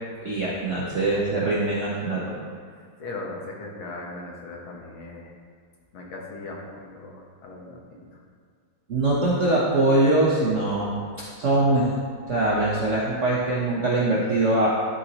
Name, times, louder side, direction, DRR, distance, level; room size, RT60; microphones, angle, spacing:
voice 1, 0.2-2.4 8.9-10.9 11.4-11.9 12.3-14.7, right 2 dB, 45° right, -6 dB, 1.2 m, -22 dB
voice 2, 2.7-5.3 5.9-8.2, left 2 dB, 80° left, -1 dB, 2.2 m, -39 dB
11.5 x 7.0 x 3.0 m, 2.2 s
omnidirectional pair, 2.2 m